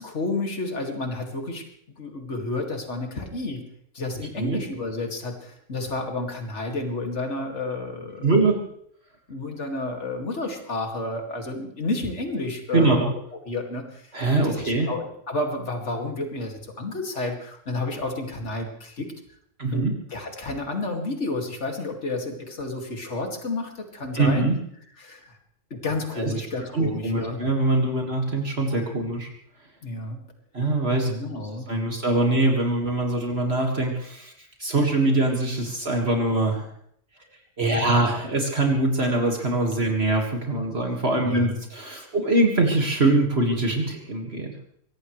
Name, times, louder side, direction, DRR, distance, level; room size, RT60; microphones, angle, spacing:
voice 1, 0.0-1.6 2.0-3.6 3.9-8.3 9.3-13.0 13.5-14.1 14.4-19.1 19.7-24.5 25.0-25.3 25.7-27.4 29.8-30.2 31.0-31.7 41.2-41.6, left 2 dB, 60° left, 3 dB, 2.7 m, -31 dB
voice 2, 8.2-8.6 12.7-13.1 14.1-14.9 19.6-19.9 24.1-24.6 26.2-26.3 26.7-29.3 30.5-31.1 31.7-34.3 34.6-36.7 37.6-44.5, right 2 dB, 50° right, 1 dB, 2.2 m, -23 dB
23.0 x 18.0 x 3.3 m, 0.68 s
omnidirectional pair, 1.4 m